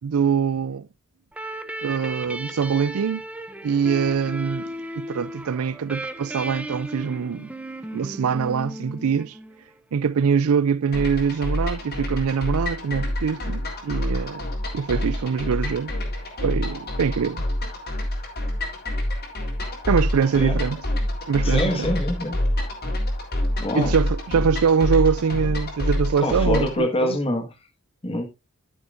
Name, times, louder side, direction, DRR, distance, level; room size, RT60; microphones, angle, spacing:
voice 1, 0.0-0.9 1.8-3.2 3.6-7.5 7.9-9.4 9.9-14.4 14.7-16.0 16.4-17.4 19.9-20.8 21.3-21.9 23.7-27.2, right 6 dB, 85° right, 0.4 m, -23 dB
sound 1, 1.3-9.8, right 1 dB, 5° right, 0.7 m, -35 dB
sound 2, 10.9-26.8, left 1 dB, 45° left, 3.6 m, -27 dB
voice 2, 21.4-22.3 23.6-23.9 26.2-27.5 28.0-28.2, left 1 dB, 25° left, 1.5 m, -25 dB
14.0 x 7.1 x 2.5 m
head